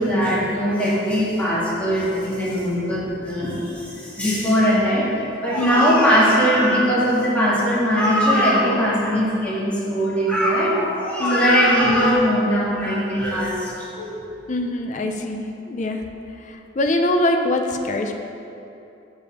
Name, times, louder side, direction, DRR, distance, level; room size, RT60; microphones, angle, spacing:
voice 1, 0.0-14.1, equal, 5° left, -8 dB, 1.6 m, -20 dB
voice 2, 5.6-6.0 11.2-11.7 14.5-16.0 16.4-18.2, left 1 dB, 40° left, 4 dB, 0.5 m, -23 dB
6.8 x 5.3 x 5.6 m, 2.8 s
head